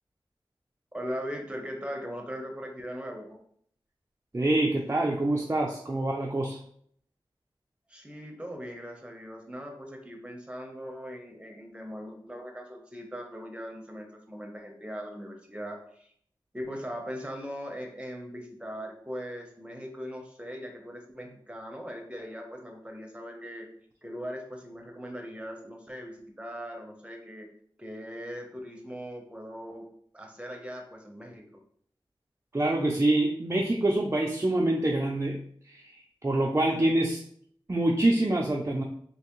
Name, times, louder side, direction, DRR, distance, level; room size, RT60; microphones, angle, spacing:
voice 1, 0.9-3.4 7.9-16.1 16.5-23.7 24.0-27.5 27.8-29.9 30.1-31.6, equal, 10° right, 2 dB, 0.9 m, -40 dB
voice 2, 4.3-6.6 32.5-35.4 35.7-37.2 37.7-38.8, right 1 dB, 30° right, -1 dB, 0.5 m, -26 dB
3.3 x 2.8 x 3.1 m, 0.63 s
cardioid pair, 45°, 9 cm